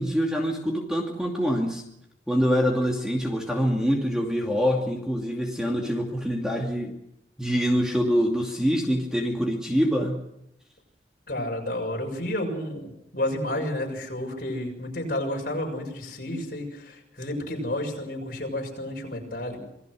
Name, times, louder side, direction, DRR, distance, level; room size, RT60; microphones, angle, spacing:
voice 1, 0.0-1.8 2.3-6.9 7.4-10.2, equal, 5° right, 0 dB, 2.5 m, -25 dB
voice 2, 11.3-19.6, left 1 dB, 50° left, 1 dB, 6.8 m, -31 dB
27.5 x 19.0 x 6.4 m, 0.80 s
head